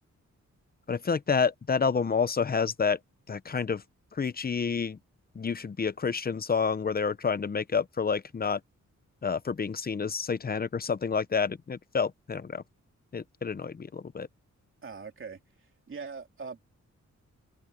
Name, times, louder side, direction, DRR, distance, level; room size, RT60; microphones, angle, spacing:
voice 1, 0.9-3.0 3.3-3.8 4.1-5.0 5.3-8.6 9.2-12.6 13.1-14.3, left 5 dB, 30° left, 0.7 m, -29 dB
voice 2, 14.8-15.4 15.9-16.7, right 5 dB, 45° right, 3.1 m, -41 dB
wide cardioid pair, 120°, 30 cm